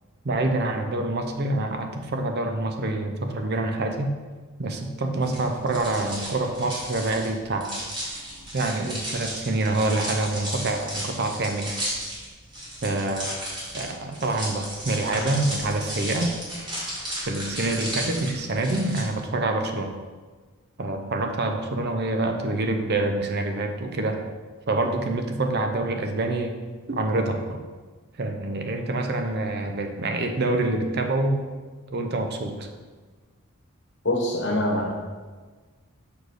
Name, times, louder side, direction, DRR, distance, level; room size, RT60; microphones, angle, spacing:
voice 1, 0.2-4.2 4.6-7.8 8.5-11.7 12.8-13.4 13.7-16.3 17.3-19.9 20.8-24.2 24.7-26.6 26.9-27.6 28.2-31.4 31.9-32.7, right 2 dB, 45° right, 5 dB, 0.6 m, -26 dB
sound 1, 5.2-19.0, right 1 dB, 20° right, 2.0 m, -34 dB
voice 2, 34.0-34.9, left 1 dB, 55° left, 0 dB, 1.3 m, -24 dB
6.4 x 4.6 x 4.7 m, 1.4 s
head